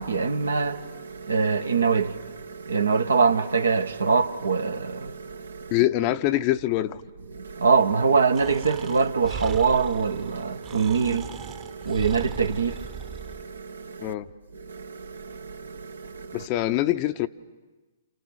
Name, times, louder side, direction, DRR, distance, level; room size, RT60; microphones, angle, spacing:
voice 1, 0.0-5.8 7.3-14.1 14.5-16.5, right 5 dB, 75° right, 1.2 m, -25 dB
voice 2, 5.7-7.0 14.0-14.3 16.3-17.3, left 14 dB, 35° left, 0.8 m, -24 dB
Breathing, 8.3-13.5, right 8 dB, 25° right, 1.1 m, -39 dB
29.0 x 28.5 x 6.4 m
figure-of-eight pair, 115°, 0 cm